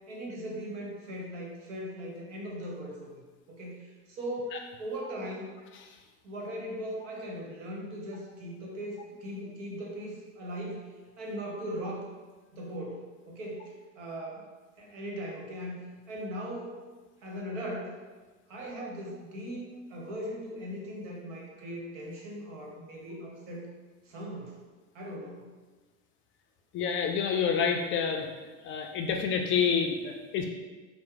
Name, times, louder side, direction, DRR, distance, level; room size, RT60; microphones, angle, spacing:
voice 1, 0.1-5.5 6.2-10.9 11.2-12.0 12.5-14.4 14.8-15.8 16.1-16.8 17.2-18.0 18.5-23.7 24.0-24.5 24.9-25.5, equal, 75° right, -1 dB, 1.1 m, -39 dB
voice 2, 26.7-28.3 28.6-30.5, left 6 dB, 35° left, 3 dB, 0.4 m, -28 dB
4.4 x 2.1 x 3.7 m, 1.3 s
supercardioid pair, 105°, 36 cm